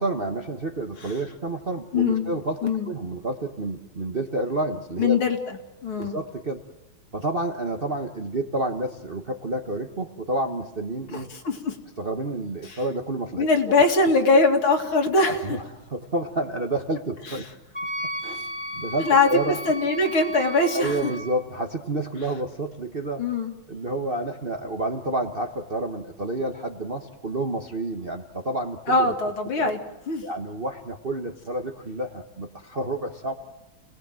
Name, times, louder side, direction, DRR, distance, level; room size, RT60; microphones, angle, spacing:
voice 1, 0.0-2.6 2.9-5.2 6.0-6.6 7.1-11.3 12.0-13.8 15.3-17.5 18.2-19.6 20.7-23.3 23.7-29.1 29.6-29.7 30.2-33.3, right 2 dB, 35° right, 3 dB, 1.1 m, -29 dB
voice 2, 1.9-2.3 2.6-2.9 5.0-5.6 5.8-6.2 11.1-11.8 12.6-12.8 13.4-15.4 17.3-17.4 19.0-21.1 23.2-23.5 28.9-30.3, left 3 dB, 70° left, 3 dB, 3.2 m, -22 dB
Wind instrument woodwind instrument, 17.7-21.4, equal, 5° right, 3.1 m, -34 dB
30.0 x 19.5 x 7.7 m, 1.0 s
omnidirectional pair, 2.4 m